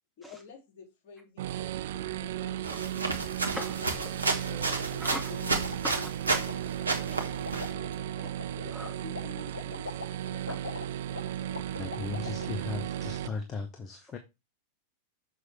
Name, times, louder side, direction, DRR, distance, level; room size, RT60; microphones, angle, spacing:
voice 1, 0.2-1.7 1.9-2.6 2.8-3.2 4.5-6.0 6.6-6.7 7.0-7.4 8.1-8.3 9.0-10.0, left 5 dB, 45° left, 2.9 m, -49 dB
sound 1, 1.4-13.3, right 11 dB, 55° right, 0.3 m, -35 dB
sound 2, 2.6-6.5 6.8-7.7, right 3 dB, 80° right, 1.3 m, -31 dB
sound 3, 3.0-12.5, left 4 dB, 70° left, 0.8 m, -45 dB
voice 2, 3.6-4.5 5.0-5.3 5.8-6.1 8.2-8.3 8.6-9.0 10.5-10.6 11.4-11.6 13.3-13.4, equal, 5° left, 1.1 m, -41 dB
voice 3, 11.7-14.2, left 4 dB, 25° left, 1.0 m, -37 dB
6.5 x 6.3 x 3.5 m
figure-of-eight pair, 90°, 0 cm